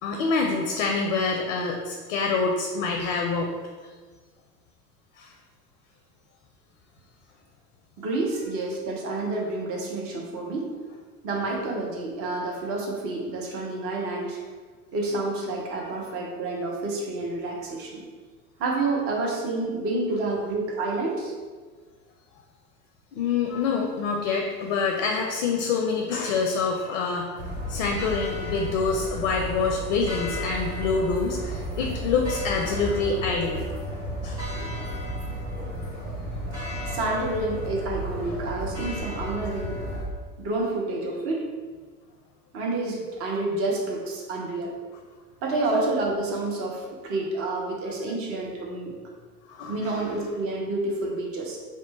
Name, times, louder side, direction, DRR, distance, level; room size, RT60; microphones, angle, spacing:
voice 1, 0.0-3.5 5.2-5.3 15.8-15.9 23.1-27.3 27.7-33.6 34.2-34.4 49.5-50.0, left 4 dB, 50° left, 2 dB, 0.5 m, -26 dB
voice 2, 8.0-10.7 11.2-14.4 14.9-18.0 18.6-21.3 36.9-39.8 40.4-41.5 42.5-44.8 45.4-49.0 49.7-51.6, right 2 dB, 30° right, -1 dB, 0.6 m, -29 dB
sound 1, 27.4-40.0, equal, 75° right, 1.3 m, -33 dB
3.0 x 2.1 x 4.0 m, 1.4 s
figure-of-eight pair, 75°, 48 cm